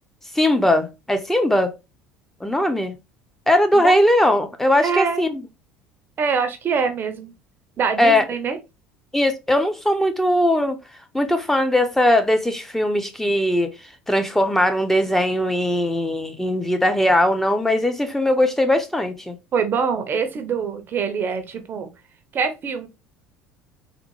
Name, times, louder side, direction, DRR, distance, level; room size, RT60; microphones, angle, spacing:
voice 1, 0.3-1.7 2.4-3.0 3.5-5.4 8.0-8.2 9.1-10.8 11.1-13.7 14.1-19.4, left 1 dB, 5° left, 0.7 m, -19 dB
voice 2, 4.8-5.2 6.2-7.3 7.8-8.6 19.5-21.9 22.3-22.9, right 6 dB, 40° right, 0.6 m, -24 dB
3.6 x 2.1 x 3.1 m
hypercardioid pair, 75°, 5 cm